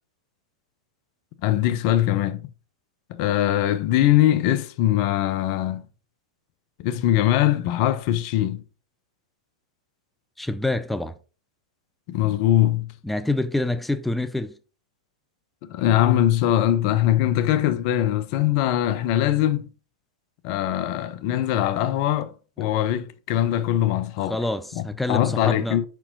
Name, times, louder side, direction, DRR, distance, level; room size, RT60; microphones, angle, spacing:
voice 1, 1.4-2.4 3.1-5.8 6.8-8.6 12.1-12.9 15.6-19.7 20.4-24.4 24.7-24.8 25.1-25.8, left 12 dB, 50° left, 0.6 m, -22 dB
voice 2, 10.4-11.2 13.0-14.5 24.3-25.8, left 2 dB, 5° left, 0.5 m, -26 dB
5.5 x 4.5 x 3.9 m
figure-of-eight pair, 95°, 3 cm